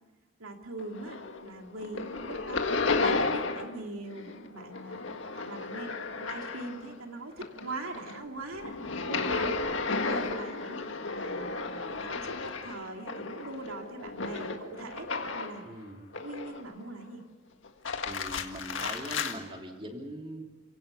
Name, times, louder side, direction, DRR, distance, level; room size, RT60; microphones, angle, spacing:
voice 1, 0.4-5.0 5.3-5.9 6.2-9.6 10.0-15.9 16.2-17.2, right 2 dB, 85° right, 3 dB, 2.5 m, -42 dB
sound 1, 0.8-1.5 1.8-3.8 4.1-6.9 7.3-15.7 16.1-16.8 17.6-19.4, left 4 dB, 65° left, 1.8 m, -33 dB
voice 2, 15.6-16.1 18.0-20.4, right 1 dB, 25° right, 2 dB, 3.0 m, -41 dB
30.0 x 17.5 x 6.9 m, 1.3 s
head